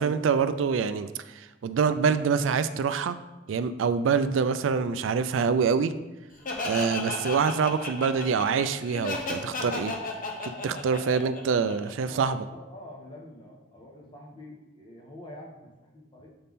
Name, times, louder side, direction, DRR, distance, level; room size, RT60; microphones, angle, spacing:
voice 1, 0.0-3.2 3.5-5.9 6.6-9.9 10.4-12.4, right 6 dB, 80° right, 12 dB, 0.4 m, -25 dB
Laughter, 6.5-12.1, left 3 dB, 45° left, 0.8 m, -33 dB
voice 2, 11.7-16.3, left 1 dB, 25° left, -1 dB, 1.2 m, -47 dB
7.6 x 4.2 x 3.6 m, 1.1 s
head